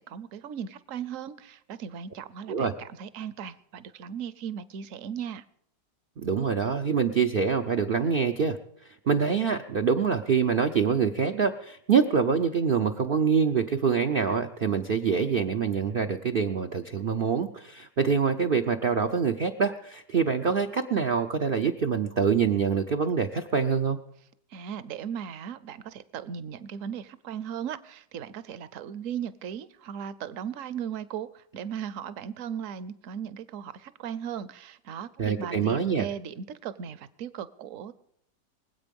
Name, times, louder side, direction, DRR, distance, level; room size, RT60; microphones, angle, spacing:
voice 1, 0.0-5.4 24.5-37.9, right 8 dB, 60° right, 15 dB, 0.9 m, -37 dB
voice 2, 6.2-8.6 8.8-24.0 35.2-36.1, right 6 dB, 85° right, 6 dB, 0.4 m, -25 dB
24.0 x 8.2 x 5.3 m, 0.73 s
omnidirectional pair, 1.8 m